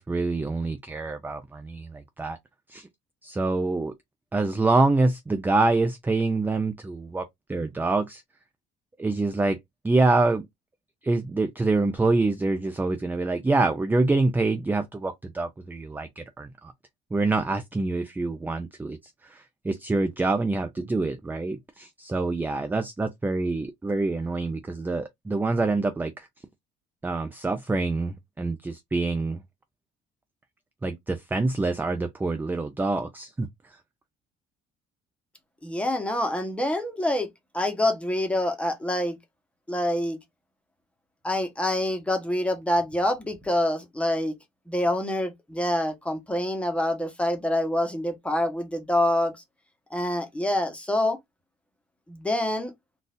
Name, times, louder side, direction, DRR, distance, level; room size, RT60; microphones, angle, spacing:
voice 1, 0.0-2.4 2.7-2.9 3.2-3.9 4.3-8.2 9.0-9.6 9.8-10.5 11.0-16.7 17.1-19.0 19.2-26.3 27.0-29.4 30.8-33.5, right 3 dB, 10° right, 0.4 m, -26 dB
voice 2, 35.6-37.3 37.5-39.2 39.7-40.2 41.2-44.3 44.7-49.3 49.9-51.2 52.1-52.7, left 1 dB, 5° left, 1.1 m, -26 dB
3.8 x 2.5 x 2.5 m
cardioid pair, 110°, 17 cm